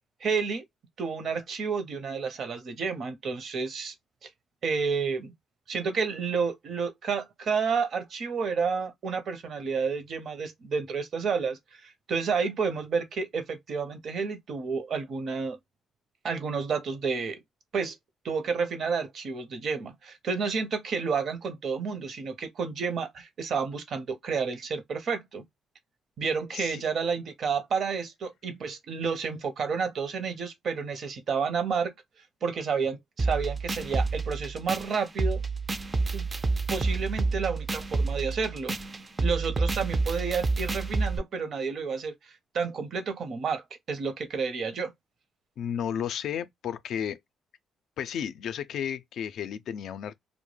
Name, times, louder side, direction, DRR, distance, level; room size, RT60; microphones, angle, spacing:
voice 1, 0.2-0.6 1.0-3.9 4.2-4.3 4.6-5.3 5.7-15.6 16.2-17.4 17.7-17.9 18.2-25.4 26.2-31.9 32.4-35.4 36.1-36.3 36.7-38.8 39.2-44.9, right 5 dB, 60° right, 0.7 m, -30 dB
sound 1, 33.2-41.2, right 3 dB, 30° right, 0.3 m, -29 dB
voice 2, 45.6-47.2 48.0-50.1, left 9 dB, 75° left, 0.3 m, -33 dB
2.2 x 2.0 x 3.1 m
cardioid pair, 90°, 0 cm